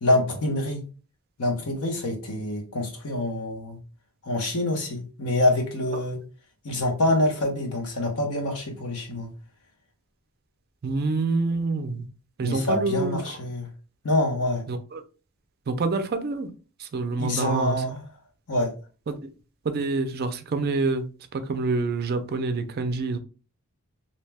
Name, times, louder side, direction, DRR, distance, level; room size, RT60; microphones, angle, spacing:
voice 1, 0.0-0.9 1.4-3.8 4.2-6.2 6.6-9.3 12.4-13.7 14.0-14.7 17.2-18.0 18.5-18.7, left 1 dB, 80° left, 3 dB, 0.9 m, -26 dB
voice 2, 10.8-12.1 12.4-13.2 14.7-15.0 15.7-16.5 16.8-17.9 19.1-19.3 19.6-23.2, right 3 dB, 45° right, 9 dB, 0.4 m, -27 dB
2.7 x 2.2 x 3.3 m, 0.35 s
head